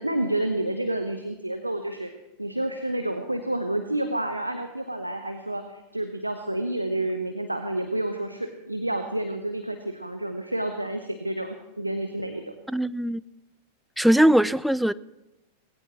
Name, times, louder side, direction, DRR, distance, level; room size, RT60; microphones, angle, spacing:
voice 1, 0.0-2.1 2.4-12.5, right 1 dB, 85° right, 7 dB, 0.9 m, -29 dB
voice 2, 12.7-13.2 14.0-14.9, right 1 dB, ahead, 17 dB, 0.4 m, -20 dB
19.0 x 17.0 x 3.1 m, 0.96 s
figure-of-eight pair, 90°, 0 cm